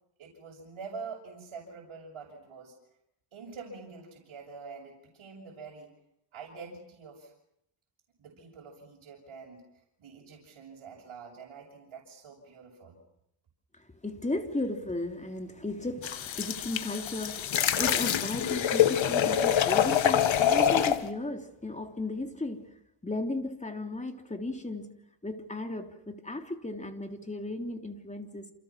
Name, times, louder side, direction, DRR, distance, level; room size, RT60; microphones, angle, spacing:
voice 1, 0.2-2.7 3.3-5.9 6.3-7.3 8.2-9.6 10.0-13.0, right 5 dB, 75° right, -3 dB, 6.7 m, -45 dB
voice 2, 14.0-22.7 23.0-24.9 25.2-28.5, left 2 dB, 15° left, 5 dB, 3.3 m, -35 dB
sound 1, 16.0-21.0, left 9 dB, 70° left, 1.7 m, -25 dB
28.5 x 28.5 x 6.0 m, 0.76 s
cardioid pair, 110°, 49 cm